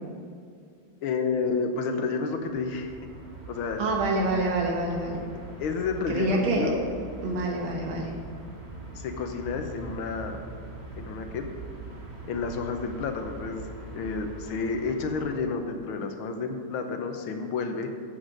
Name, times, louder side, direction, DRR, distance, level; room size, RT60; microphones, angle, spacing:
voice 1, 1.0-3.0 3.5-3.9 5.6-6.8 9.0-10.4 11.0-11.5 12.3-13.7 13.9-17.9, left 4 dB, 80° left, 6 dB, 1.7 m, -30 dB
sound 1, 2.4-15.4, right 2 dB, 20° right, 1.6 m, -42 dB
voice 2, 3.8-5.2 6.1-6.7 7.2-8.1, right 2 dB, 70° right, -1 dB, 2.2 m, -26 dB
12.5 x 7.9 x 3.9 m, 2.3 s
omnidirectional pair, 2.3 m